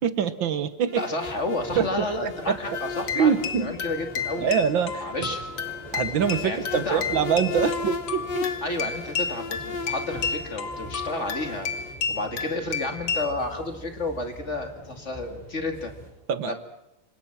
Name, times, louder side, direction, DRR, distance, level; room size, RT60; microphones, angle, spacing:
voice 1, 0.0-1.1 1.8-2.6 3.1-3.7 4.4-5.3 5.9-8.5 16.3-16.6, right 7 dB, 75° right, 12 dB, 2.0 m, -25 dB
sound 1, 0.9-11.9, left 5 dB, 65° left, 1.9 m, -37 dB
voice 2, 1.0-4.5 5.0-5.5 6.4-7.0 8.6-11.7 12.1-15.9 16.5-16.6, left 2 dB, 35° left, 6 dB, 2.6 m, -31 dB
sound 2, 1.2-16.1, equal, 20° left, 7.6 m, -43 dB
sound 3, 2.7-13.3, left 6 dB, 90° left, 2.5 m, -32 dB
27.5 x 26.0 x 6.0 m, 0.86 s
omnidirectional pair, 2.1 m